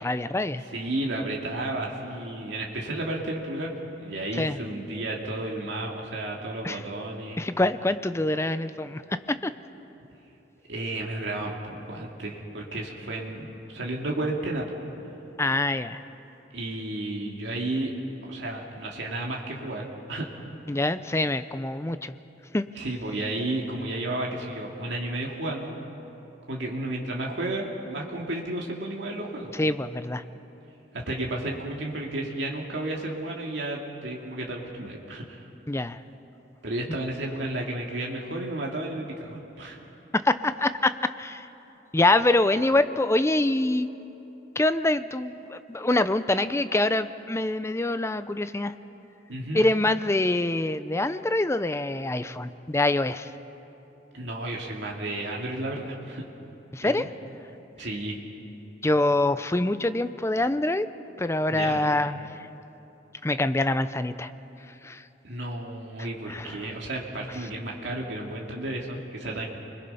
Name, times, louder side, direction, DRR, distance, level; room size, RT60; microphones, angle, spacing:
voice 1, 0.0-0.6 4.3-4.6 6.6-6.8 7.4-9.0 9.3-9.5 15.4-16.0 20.7-22.1 22.5-22.6 29.5-30.2 35.7-36.0 40.1-41.5 41.9-43.9 44.6-48.7 49.5-53.3 56.7-57.1 58.8-60.9 61.2-62.2 63.2-64.3 64.8-65.0 66.0-66.7, left 2 dB, 15° left, 12 dB, 0.6 m, -25 dB
voice 2, 0.7-3.7 4.0-7.4 10.7-14.8 16.5-17.9 18.3-20.4 22.8-25.7 26.5-29.5 30.9-35.4 36.6-39.8 49.3-49.6 54.1-56.2 56.8-57.1 57.8-58.2 61.5-61.8 65.2-69.5, right 1 dB, 70° right, -1 dB, 2.4 m, -32 dB
29.5 x 21.0 x 5.6 m, 3.0 s
head